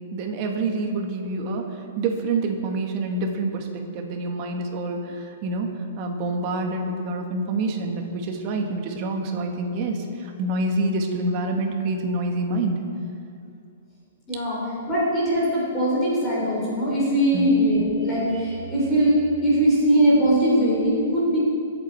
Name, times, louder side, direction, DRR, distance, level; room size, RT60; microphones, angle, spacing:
voice 1, 0.1-1.6 2.0-5.7 6.0-12.8 17.3-17.5, right 2 dB, 35° right, 2 dB, 1.7 m, -27 dB
voice 2, 14.3-14.6 14.9-21.4, right 1 dB, 15° left, -6 dB, 3.6 m, -21 dB
24.5 x 8.4 x 4.6 m, 2.5 s
hypercardioid pair, 165°, 0 cm